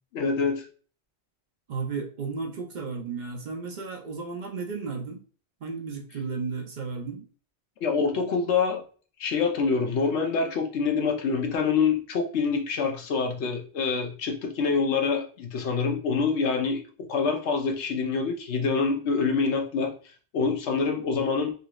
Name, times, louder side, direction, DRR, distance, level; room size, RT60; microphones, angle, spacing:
voice 1, 0.1-0.7 7.8-8.8 9.2-16.8 17.1-19.9 20.3-21.5, left 5 dB, 90° left, 4 dB, 1.1 m, -26 dB
voice 2, 1.7-5.2 5.6-7.3, right 4 dB, 55° right, 3 dB, 0.6 m, -34 dB
4.0 x 2.9 x 2.3 m, 0.40 s
omnidirectional pair, 1.1 m